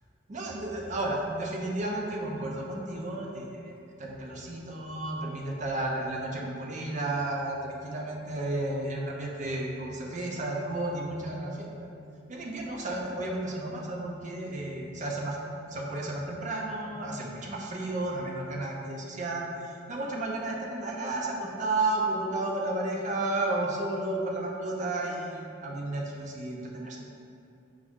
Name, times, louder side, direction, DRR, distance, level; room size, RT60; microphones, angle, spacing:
voice 1, 0.3-3.7 4.0-11.9 12.3-19.5 19.9-27.0, right 2 dB, 40° right, -1 dB, 0.5 m, -32 dB
4.8 x 2.6 x 3.5 m, 2.5 s
head